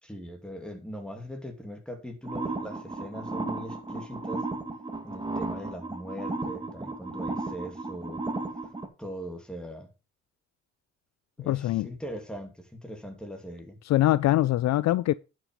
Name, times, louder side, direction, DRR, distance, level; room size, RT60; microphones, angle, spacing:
voice 1, 0.0-4.4 5.0-8.2 9.0-9.9 11.4-13.8, equal, 5° left, 2.6 m, -40 dB
sound 1, 2.2-8.9, right 2 dB, 15° right, 2.0 m, -34 dB
voice 2, 11.5-11.9 13.9-15.1, left 15 dB, 65° left, 0.4 m, -23 dB
9.8 x 6.2 x 5.3 m
cardioid pair, 90°, 30 cm